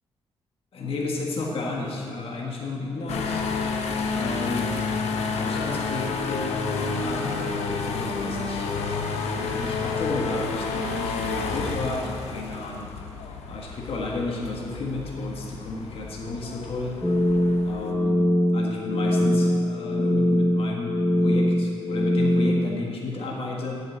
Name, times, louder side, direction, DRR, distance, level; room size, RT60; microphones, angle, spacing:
voice 1, 0.7-3.5 4.1-4.7 5.4-8.7 9.4-12.9 13.5-17.0 17.6-18.2 18.5-20.9 21.2-23.8, left 2 dB, 65° left, -1 dB, 1.4 m, -32 dB
sound 1, 3.1-17.9, left 4 dB, 90° left, 0.8 m, -30 dB
sound 2, 17.0-22.7, left 1 dB, 5° left, 0.8 m, -22 dB
7.8 x 6.5 x 7.4 m, 2.4 s
cardioid pair, 75°, 11 cm